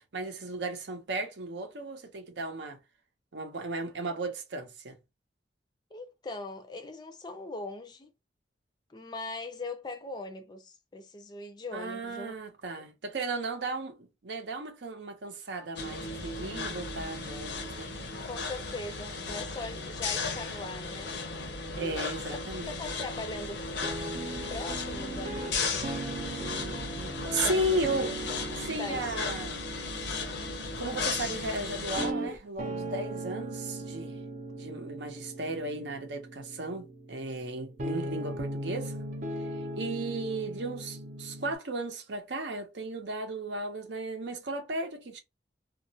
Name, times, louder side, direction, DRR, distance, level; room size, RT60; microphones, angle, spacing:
voice 1, 0.1-2.8 3.3-5.0 11.7-17.9 21.7-22.8 27.3-28.2 28.6-29.6 30.8-34.2 34.5-39.0 39.4-45.2, right 2 dB, 80° right, 0.7 m, -35 dB
voice 2, 5.9-8.1 8.9-12.4 12.8-12.9 18.2-21.1 21.8-22.1 22.7-23.6 24.5-26.1 27.4-27.8 28.8-29.2, left 2 dB, 25° left, 0.4 m, -40 dB
sound 1, 15.8-32.1, left 3 dB, 75° left, 0.5 m, -35 dB
sound 2, 23.8-41.5, right 1 dB, 45° right, 0.5 m, -39 dB
2.3 x 2.1 x 2.7 m
head